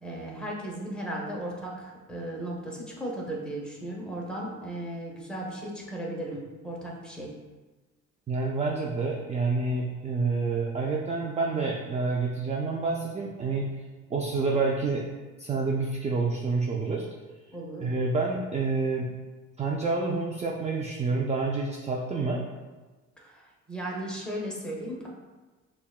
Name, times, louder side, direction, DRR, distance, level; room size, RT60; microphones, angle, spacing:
voice 1, 0.0-7.3 17.5-17.9 23.2-25.1, right 1 dB, 5° left, -2 dB, 1.0 m, -36 dB
voice 2, 8.3-13.7 14.1-15.0 15.4-17.0 17.8-19.1 19.6-22.4, right 3 dB, 20° right, -1 dB, 0.4 m, -28 dB
5.4 x 2.3 x 2.3 m, 1.3 s
cardioid pair, 85°, 30 cm